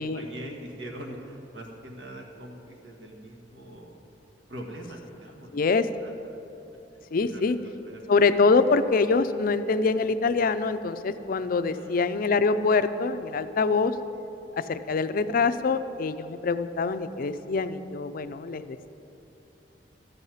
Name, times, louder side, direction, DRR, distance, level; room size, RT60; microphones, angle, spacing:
voice 1, 0.0-3.9 4.5-5.5 6.0-6.1 7.2-8.2 11.7-12.3, right 1 dB, 80° right, 1 dB, 1.6 m, -42 dB
voice 2, 5.5-5.9 7.1-7.6 8.1-14.0 14.6-18.8, left 4 dB, 50° left, 12 dB, 0.4 m, -24 dB
13.0 x 5.6 x 9.2 m, 2.9 s
head